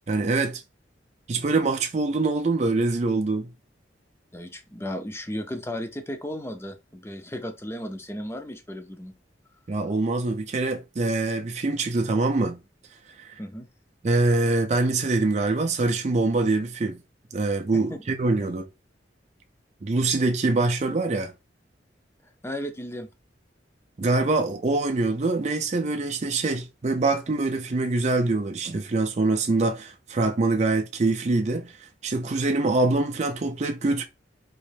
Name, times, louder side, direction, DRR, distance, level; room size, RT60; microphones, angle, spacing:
voice 1, 0.1-0.6 1.3-3.5 9.7-12.6 13.2-13.3 14.0-17.0 17.3-18.6 19.8-21.3 24.0-31.7 32.0-34.0, right 3 dB, 40° right, 0.4 m, -24 dB
voice 2, 4.3-9.1 13.4-13.7 17.7-17.8 18.4-18.5 22.4-23.1, equal, 15° left, 0.5 m, -35 dB
4.1 x 3.0 x 3.3 m
head